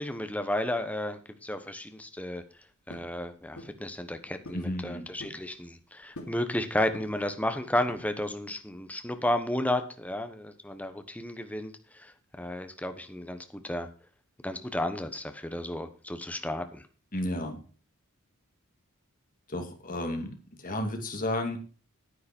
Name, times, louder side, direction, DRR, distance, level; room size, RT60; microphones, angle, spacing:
voice 1, 0.0-2.4 2.9-12.1 12.4-13.9 14.4-16.8, left 1 dB, 5° left, 8 dB, 1.0 m, -32 dB
sound 1, 2.9-3.2 3.6-3.8 4.5-4.7 5.0-5.5 6.2-6.5 6.9-7.3 7.9-8.4, left 1 dB, 85° left, 2.8 m, -45 dB
voice 2, 4.5-5.1 17.1-17.6 19.5-20.3 20.6-21.6, left 1 dB, 40° left, 4 dB, 2.4 m, -32 dB
9.8 x 9.6 x 4.4 m, 0.37 s
head